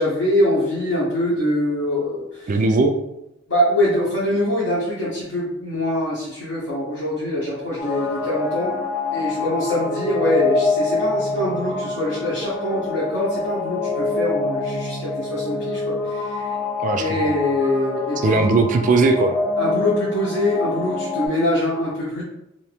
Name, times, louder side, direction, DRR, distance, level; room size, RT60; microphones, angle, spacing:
voice 1, 0.0-2.5 3.5-8.8 9.1-16.5 16.9-18.4 19.6-22.2, left 1 dB, 85° left, -9 dB, 1.0 m, -23 dB
voice 2, 2.5-2.9 16.8-17.3 18.2-19.4, right 3 dB, 40° right, 6 dB, 0.3 m, -18 dB
sound 1, 7.8-21.3, left 3 dB, 40° left, 0.8 m, -26 dB
2.8 x 2.6 x 3.4 m, 0.87 s
head